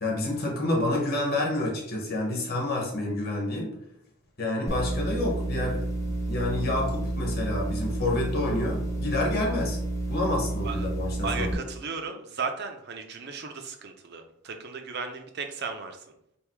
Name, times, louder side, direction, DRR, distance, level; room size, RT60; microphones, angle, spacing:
voice 1, 0.0-3.7 4.4-5.8 6.3-9.8 10.1-11.5, left 2 dB, 45° left, -1 dB, 1.2 m, -28 dB
sound 1, 4.7-11.5, right 2 dB, 15° left, 0.7 m, -30 dB
voice 2, 11.2-16.0, right 5 dB, 50° right, 6 dB, 0.6 m, -35 dB
3.5 x 2.6 x 4.6 m, 0.76 s
head